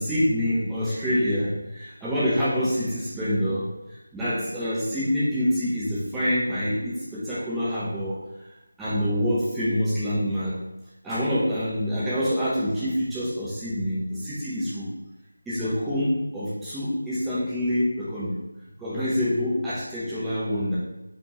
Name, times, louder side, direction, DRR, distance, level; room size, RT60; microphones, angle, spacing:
voice 1, 0.0-3.7 4.1-8.2 8.8-10.5 11.0-14.9 15.5-18.3 18.8-20.8, equal, 5° right, -12 dB, 0.8 m, -26 dB
4.6 x 2.8 x 2.9 m, 0.97 s
figure-of-eight pair, 165°, 0 cm